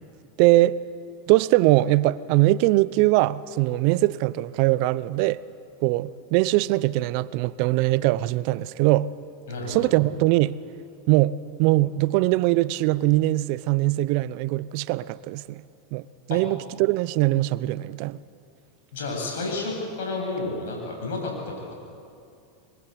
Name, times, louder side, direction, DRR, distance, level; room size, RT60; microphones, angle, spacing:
voice 1, 0.4-0.8 1.3-5.4 5.8-9.1 9.7-10.6 11.1-15.6 15.9-18.2, right 18 dB, 60° right, 0.7 m, -21 dB
voice 2, 9.5-9.9 16.3-16.4 18.9-21.7, left 3 dB, 75° left, 8.0 m, -31 dB
24.0 x 22.5 x 8.2 m
hypercardioid pair, 95°, 0 cm